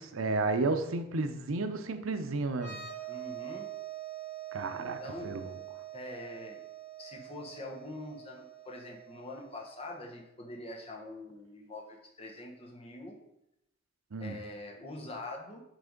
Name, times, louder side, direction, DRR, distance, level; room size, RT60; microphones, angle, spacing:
voice 1, 0.0-2.8 4.5-5.5 14.1-14.4, right 3 dB, 85° right, 8 dB, 0.6 m, -32 dB
sound 1, 2.5-10.0, right 12 dB, 10° left, 1.7 m, -45 dB
voice 2, 3.1-3.7 4.8-5.3 5.9-6.6 7.0-13.2 14.2-15.6, left 2 dB, 30° left, 1 dB, 0.9 m, -44 dB
6.0 x 3.4 x 5.2 m, 0.84 s
head